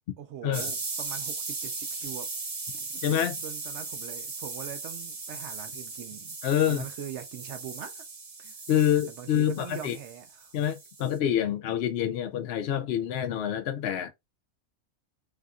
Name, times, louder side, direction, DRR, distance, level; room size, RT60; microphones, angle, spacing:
voice 1, 0.2-2.3 2.7-6.4 6.7-8.0 8.4-8.6 9.1-10.5, right 9 dB, 65° right, 0.8 m, -42 dB
sound 1, 0.5-11.2, right 3 dB, 50° right, 1.2 m, -38 dB
voice 2, 3.0-3.4 6.4-6.8 8.7-9.9 10.5-14.1, left 10 dB, 65° left, 0.7 m, -27 dB
3.5 x 2.5 x 2.3 m
omnidirectional pair, 1.4 m